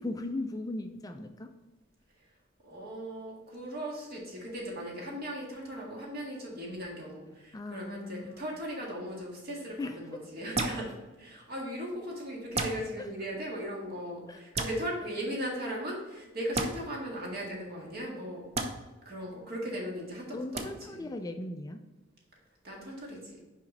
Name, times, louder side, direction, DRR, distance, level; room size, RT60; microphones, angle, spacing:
voice 1, 0.0-1.5 7.5-8.4 9.8-10.3 13.0-13.1 14.3-14.4 20.3-21.8, left 2 dB, 20° left, 6 dB, 0.3 m, -38 dB
voice 2, 2.6-10.9 11.2-18.4 19.1-21.1 22.6-23.4, equal, 50° right, -2 dB, 1.8 m, -38 dB
sound 1, 10.5-10.8 12.5-12.8 14.5-14.7 16.5-16.7 18.5-18.7 20.5-20.6, right 2 dB, 35° right, 0.6 m, -30 dB
5.7 x 5.0 x 3.9 m, 1.1 s
head